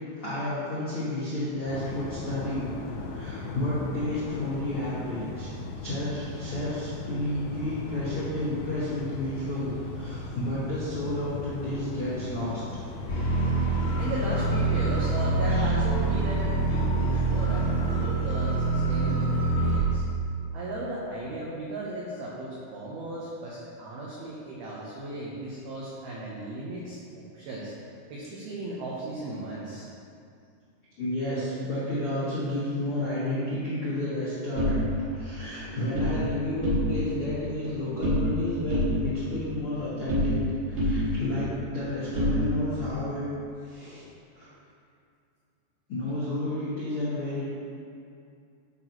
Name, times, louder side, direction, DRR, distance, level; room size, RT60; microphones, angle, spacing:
voice 1, 0.2-2.7 3.0-5.5 5.8-12.8 13.2-13.4 13.8-13.9 15.4-15.7 17.7-17.9 31.0-40.3 40.7-43.3 43.6-44.0 44.3-44.5 45.9-47.5, left 1 dB, 65° left, -13 dB, 1.3 m, -31 dB
sound 1, 1.7-18.1, left 3 dB, 85° left, 3.3 m, -38 dB
sound 2, 13.1-19.8, right 3 dB, 45° left, 1.9 m, -25 dB
voice 2, 14.0-20.0 20.5-27.7 28.1-29.9, right 2 dB, 85° right, -6 dB, 2.2 m, -36 dB
sound 3, 34.6-36.2 36.5-37.2 37.4-38.4 38.7-40.5 40.8-42.9, left 1 dB, 65° right, 3.5 m, -28 dB
11.5 x 6.0 x 3.1 m, 2.4 s
omnidirectional pair, 5.8 m